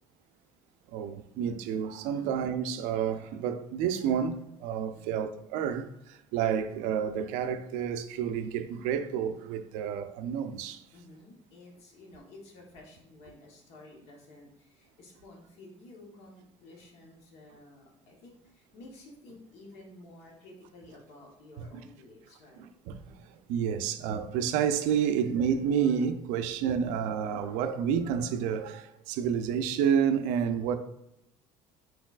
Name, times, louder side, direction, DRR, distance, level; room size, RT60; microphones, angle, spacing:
voice 1, 0.9-10.8 21.6-21.7 22.6-30.8, right 8 dB, 90° right, 0.4 m, -30 dB
voice 2, 4.9-5.3 10.9-22.7, left 2 dB, 60° left, 1.0 m, -52 dB
4.4 x 4.0 x 2.4 m
cardioid pair, 175°, 12 cm